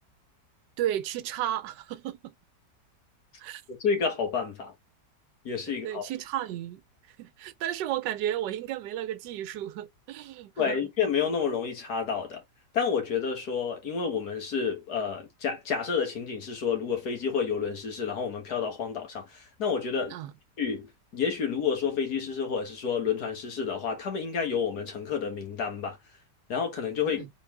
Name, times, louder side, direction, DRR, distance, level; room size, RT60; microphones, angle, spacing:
voice 1, 0.8-2.3 3.4-3.6 5.8-6.8 7.2-10.8 20.1-20.3 27.1-27.3, right 12 dB, 80° right, 1.2 m, -33 dB
voice 2, 3.7-4.7 5.5-6.0 10.6-12.4 12.7-20.2 20.6-26.0 26.5-27.2, left 6 dB, 65° left, 1.9 m, -29 dB
4.0 x 3.7 x 3.2 m
omnidirectional pair, 1.9 m